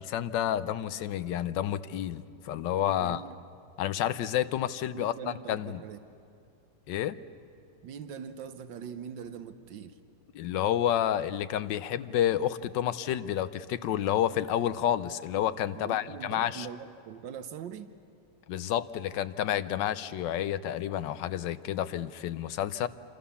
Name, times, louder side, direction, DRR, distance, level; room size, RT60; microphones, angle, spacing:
voice 1, 0.0-3.2 3.8-5.8 6.9-7.2 10.3-16.7 18.5-22.9, left 11 dB, 80° left, 14 dB, 1.4 m, -30 dB
voice 2, 3.0-3.4 4.9-6.0 7.8-10.0 15.7-17.9, right 7 dB, 85° right, 11 dB, 1.6 m, -42 dB
27.0 x 26.0 x 7.1 m, 2.6 s
omnidirectional pair, 1.9 m